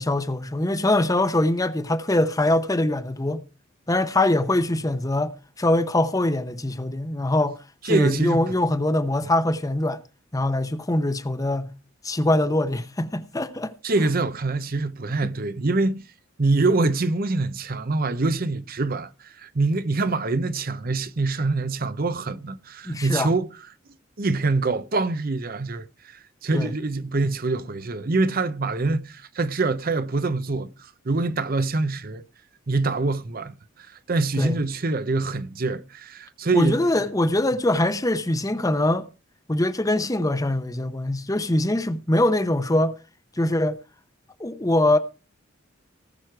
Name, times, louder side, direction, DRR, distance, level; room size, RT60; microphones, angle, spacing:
voice 1, 0.0-3.4 3.9-7.6 7.8-10.0 10.3-11.7 12.0-13.7 15.2-15.3 22.8-23.3 26.5-26.7 34.4-34.6 36.5-39.1 39.5-43.0 43.4-43.8 44.4-45.0, left 1 dB, 15° left, 0.8 m, -23 dB
voice 2, 7.8-8.6 13.8-16.1 16.4-23.5 24.2-30.7 31.0-32.2 32.7-36.8, right 3 dB, 45° right, 0.8 m, -25 dB
19.0 x 6.3 x 4.7 m
head